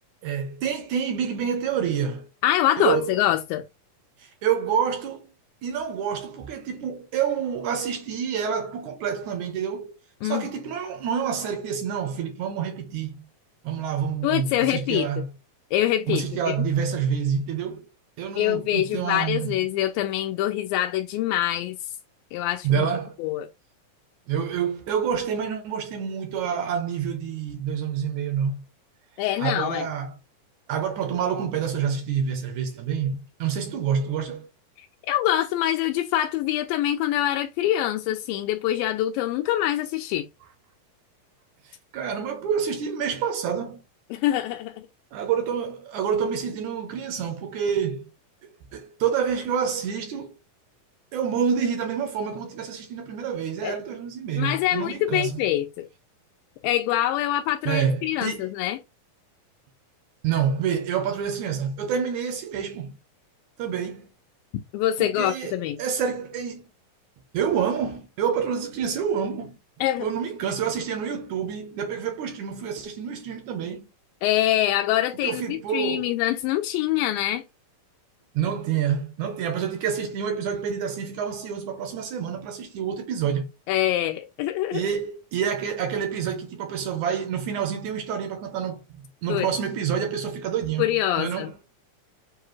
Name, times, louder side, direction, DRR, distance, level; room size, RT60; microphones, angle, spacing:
voice 1, 0.2-2.3 2.8-3.2 4.2-5.3 5.6-9.9 10.2-13.2 13.6-15.3 16.1-17.9 18.2-19.6 22.6-23.2 24.3-28.6 29.4-30.1 30.7-34.5 41.7-43.8 45.1-48.1 48.7-50.3 51.1-55.4 57.7-58.5 60.2-63.0 63.6-64.1 65.0-66.7 67.3-69.6 70.0-73.9 75.2-76.1 78.3-83.5 84.7-91.5, right 7 dB, 75° right, 1.8 m, -28 dB
voice 2, 2.4-3.6 10.2-10.4 14.2-15.3 15.7-16.6 18.4-21.8 22.3-22.9 23.2-23.5 29.2-29.8 35.1-40.3 44.1-44.8 53.6-53.8 54.4-55.9 56.6-58.8 64.7-65.8 69.8-70.1 74.2-77.4 83.7-84.8 89.3-89.5 90.8-91.5, left 13 dB, 90° left, 2.3 m, -25 dB
7.0 x 2.3 x 3.1 m
omnidirectional pair, 4.0 m